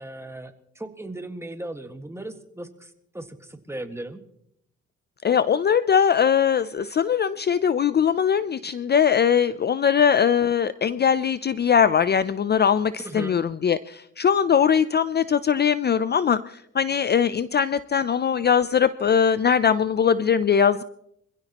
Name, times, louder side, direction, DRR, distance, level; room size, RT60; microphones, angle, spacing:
voice 1, 0.0-4.2 13.0-13.4, right 1 dB, 10° right, 6 dB, 1.7 m, -37 dB
voice 2, 5.2-20.8, left 7 dB, 35° left, 15 dB, 0.5 m, -21 dB
26.0 x 16.0 x 3.0 m, 0.73 s
cardioid pair, 90°, 30 cm